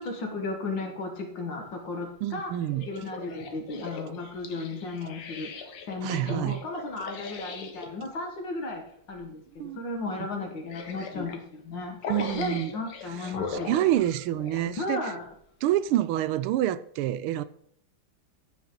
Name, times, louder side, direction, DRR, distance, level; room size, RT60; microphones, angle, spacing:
voice 1, 0.0-2.5 2.9-5.5 5.9-13.8 14.8-15.3, left 2 dB, 60° left, 2.2 m, -35 dB
voice 2, 2.2-2.9 6.0-6.6 9.5-9.8 10.2-10.3 12.1-12.7 13.5-15.0 15.6-17.4, right 13 dB, 90° right, 1.5 m, -27 dB
sound 1, 2.6-7.9 9.0-9.2 9.6-9.7 10.4-11.4 12.0-14.7 15.3-15.4, left 5 dB, 80° left, 2.0 m, -40 dB
15.0 x 5.8 x 3.9 m
omnidirectional pair, 2.3 m